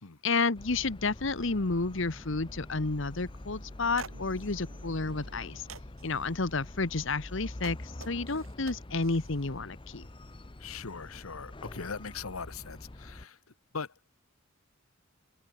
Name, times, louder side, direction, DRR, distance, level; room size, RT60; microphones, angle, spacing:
voice 1, 0.2-5.7 6.0-10.1, left 3 dB, 60° left, 1.2 m, -31 dB
sound 1, 0.5-13.3, left 1 dB, 25° left, 0.8 m, -45 dB
sound 2, 0.7-6.1, right 1 dB, 50° right, 4.0 m, -57 dB
sound 3, 4.0-4.5 5.1-5.4 5.7-6.2 7.1-9.5, right 5 dB, 75° right, 5.2 m, -48 dB
voice 2, 10.6-13.4 13.7-14.0, left 5 dB, 85° left, 1.3 m, -40 dB
head